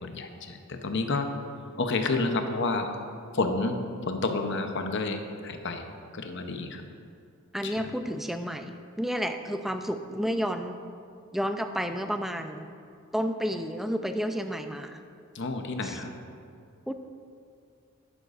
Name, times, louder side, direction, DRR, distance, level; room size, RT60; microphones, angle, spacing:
voice 1, 0.0-1.3 1.8-2.9 3.3-3.8 4.1-5.8 6.1-6.8 7.6-7.7 15.3-16.1, left 3 dB, 60° left, 6 dB, 0.8 m, -29 dB
voice 2, 7.5-10.8 11.3-12.8 13.1-15.0 15.8-16.0 16.9-17.0, equal, ahead, 7 dB, 0.4 m, -31 dB
12.0 x 10.0 x 2.5 m, 2.4 s
head